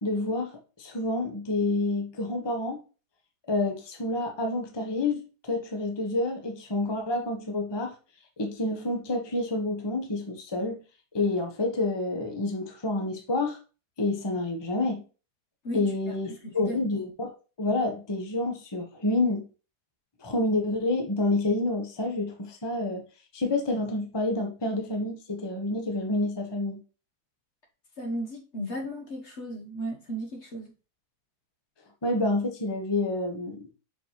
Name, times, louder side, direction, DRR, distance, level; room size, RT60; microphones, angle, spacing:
voice 1, 0.0-0.5 0.8-2.8 3.5-7.9 8.4-10.8 11.1-13.6 14.0-15.0 15.7-17.3 17.6-19.5 20.2-23.0 23.3-26.8 32.0-33.7, left 2 dB, 20° left, 1.0 m, -28 dB
voice 2, 16.4-16.8 28.0-30.7, right 1 dB, 45° left, 1.3 m, -35 dB
5.9 x 5.1 x 3.1 m
omnidirectional pair, 1.7 m